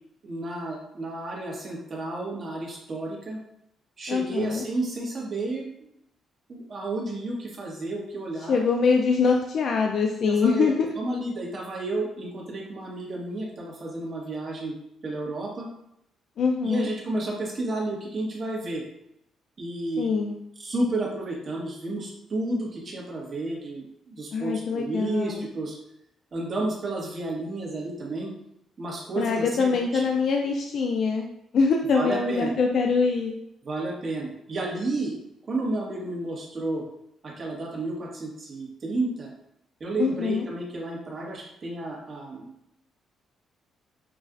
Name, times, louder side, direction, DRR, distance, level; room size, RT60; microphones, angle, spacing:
voice 1, 0.2-3.4 4.0-5.7 6.5-8.6 10.2-10.7 11.0-14.8 15.0-15.7 16.6-18.8 19.6-20.1 20.6-25.7 26.3-28.3 28.8-30.0 31.9-32.5 33.6-35.1 35.5-36.8 37.2-39.3 39.8-42.5, right 2 dB, 45° right, -3 dB, 1.3 m, -31 dB
voice 2, 4.1-4.6 8.5-10.9 16.4-16.9 20.0-20.3 24.3-25.5 29.2-33.3 40.0-40.5, left 5 dB, 60° left, 2 dB, 0.4 m, -24 dB
6.0 x 2.4 x 2.5 m, 0.79 s
cardioid pair, 90°, 0 cm